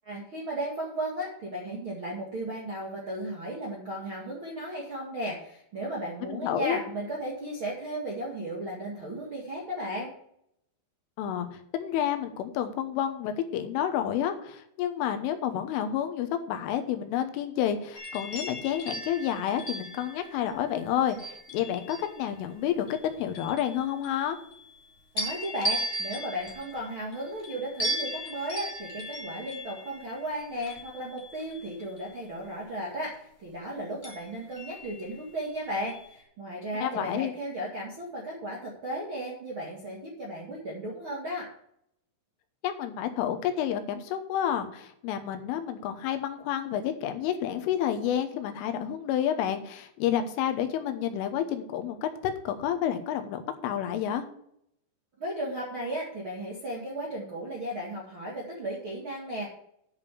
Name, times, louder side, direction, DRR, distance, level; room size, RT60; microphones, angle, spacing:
voice 1, 0.0-10.1 25.1-41.5 55.2-59.5, right 1 dB, 50° right, -5 dB, 1.5 m, -35 dB
voice 2, 6.3-6.8 11.2-24.4 36.8-37.3 42.6-54.2, left 10 dB, 85° left, 7 dB, 3.5 m, -30 dB
sound 1, 17.9-22.3 22.9-24.8 25.2-32.1 34.0-35.4 35.9-36.1, right 1 dB, 25° left, 1.3 m, -37 dB
10.5 x 5.2 x 6.7 m, 0.71 s
omnidirectional pair, 5.6 m